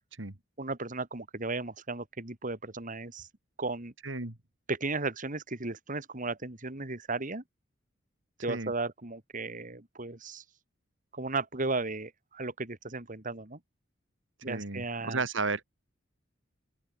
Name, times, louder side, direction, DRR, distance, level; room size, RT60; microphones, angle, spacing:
voice 1, 0.6-3.3 3.6-3.9 4.7-7.4 8.4-10.4 11.1-13.6 14.4-15.2, right 3 dB, 45° right, 2.8 m, -35 dB
voice 2, 4.0-4.3 8.5-8.7 14.5-15.6, right 3 dB, 75° right, 2.5 m, -33 dB
open air
head